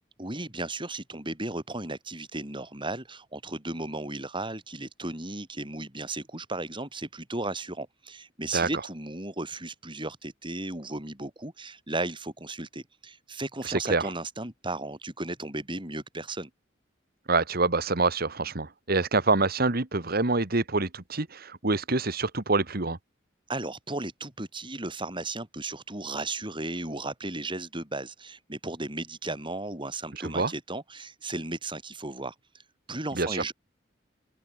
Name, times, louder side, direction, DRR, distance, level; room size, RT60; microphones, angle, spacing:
voice 1, 0.2-16.5 23.5-32.3 32.9-33.5, right 2 dB, 25° right, 6.6 m, -35 dB
voice 2, 13.7-14.0 17.3-23.0 30.2-30.5 33.2-33.4, right 3 dB, 55° right, 1.8 m, -26 dB
open air
head